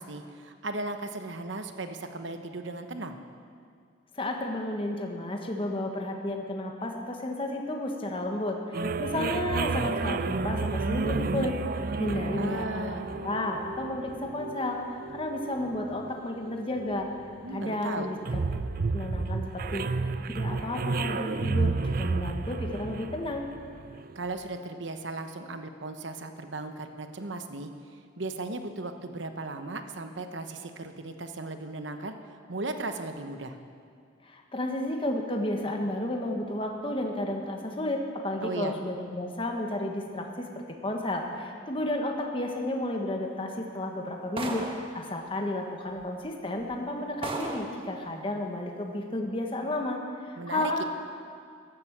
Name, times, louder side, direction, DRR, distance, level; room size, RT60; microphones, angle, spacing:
voice 1, 0.0-3.2 12.4-13.1 17.4-18.1 24.1-33.6 38.4-38.7 50.4-50.8, right 2 dB, 65° right, 7 dB, 1.0 m, -36 dB
voice 2, 4.1-14.8 15.1-17.1 17.5-18.2 18.9-21.7 22.0-23.4 34.2-50.8, left 1 dB, 25° left, 2 dB, 1.3 m, -32 dB
sound 1, 8.7-24.1, right 3 dB, 50° right, 0.5 m, -31 dB
sound 2, 44.4-44.9 46.0-46.1 46.6-46.7 47.2-47.8, right 2 dB, 30° right, 1.3 m, -34 dB
14.0 x 11.5 x 7.3 m, 2.2 s
head